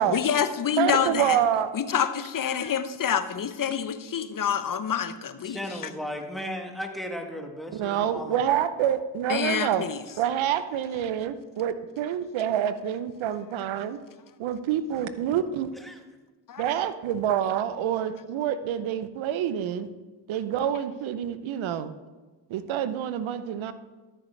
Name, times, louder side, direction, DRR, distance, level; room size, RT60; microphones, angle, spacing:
voice 1, 0.0-1.4 1.7-5.6 9.3-10.0 16.5-16.6, left 8 dB, 40° left, 12 dB, 0.8 m, -27 dB
voice 2, 0.8-1.7 7.7-9.9 10.2-14.0 14.4-15.7 16.6-19.9 20.3-21.9 22.5-23.7, right 10 dB, 70° right, 13 dB, 0.8 m, -27 dB
voice 3, 5.4-8.4 15.7-16.0, equal, ahead, 2 dB, 1.7 m, -35 dB
13.0 x 6.5 x 3.3 m, 1.3 s
hypercardioid pair, 40°, 49 cm